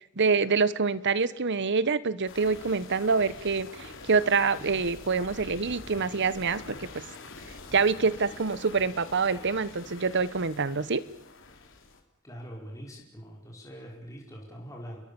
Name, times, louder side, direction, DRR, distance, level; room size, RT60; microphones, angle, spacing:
voice 1, 0.2-7.0 7.7-11.0, right 4 dB, 55° right, 17 dB, 1.1 m, -26 dB
sound 1, 2.3-12.0, left 3 dB, 60° left, 3.9 m, -46 dB
voice 2, 12.2-15.0, equal, 15° left, -1 dB, 5.0 m, -43 dB
30.0 x 22.5 x 7.0 m, 0.74 s
head